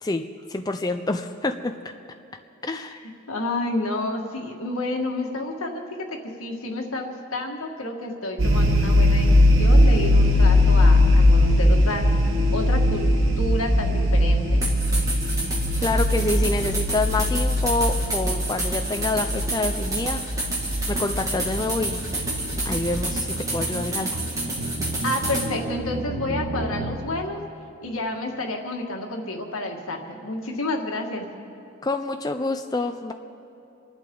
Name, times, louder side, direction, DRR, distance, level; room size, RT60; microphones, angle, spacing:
voice 1, 0.0-1.7 2.6-3.0 15.8-20.2 20.9-22.1 22.6-24.1 31.8-33.1, left 2 dB, 20° left, 6 dB, 0.4 m, -27 dB
voice 2, 2.9-12.1 12.5-13.0 13.4-14.6 25.0-27.4 27.8-31.3, left 2 dB, 85° left, 2 dB, 1.7 m, -30 dB
sound 1, 8.4-23.1, left 1 dB, 70° right, 1.2 m, -20 dB
sound 2, 14.6-25.5, right 1 dB, 15° right, 2.0 m, -29 dB
sound 3, 20.6-27.0, right 2 dB, 90° right, 1.7 m, -33 dB
27.0 x 11.5 x 3.8 m, 2.9 s
head